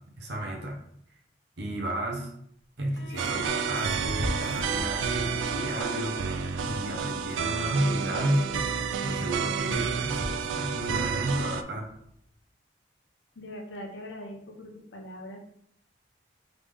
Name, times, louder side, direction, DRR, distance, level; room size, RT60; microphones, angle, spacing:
voice 1, 0.2-0.8 1.6-2.3 2.8-6.2 6.6-8.4 9.0-11.9, right 1 dB, 65° right, -1 dB, 1.0 m, -32 dB
Bowed string instrument, 2.9-7.2, left 1 dB, 60° left, 1.4 m, -42 dB
sound 1, 2.9-3.4 3.8-12.2, equal, 40° right, 0.9 m, -41 dB
sound 2, 3.2-11.6, right 6 dB, 85° right, 0.3 m, -30 dB
voice 2, 13.4-15.5, left 1 dB, 75° left, 1 dB, 0.9 m, -41 dB
3.9 x 3.5 x 3.4 m, 0.67 s
head